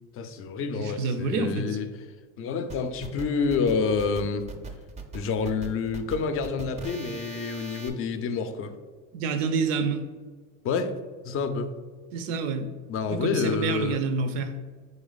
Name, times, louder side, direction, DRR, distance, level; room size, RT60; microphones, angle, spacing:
voice 1, 0.2-1.9 2.4-4.5 5.1-8.7 10.6-11.0 11.2-11.8 12.9-14.0, left 5 dB, 40° left, 9 dB, 0.4 m, -28 dB
voice 2, 0.7-1.8 9.1-10.0 12.1-12.7 13.1-14.5, right 4 dB, 75° right, 8 dB, 0.6 m, -28 dB
sound 1, 2.7-7.9, right 3 dB, 20° right, 0.4 m, -40 dB
3.8 x 3.0 x 3.9 m, 1.5 s
supercardioid pair, 95°, 37 cm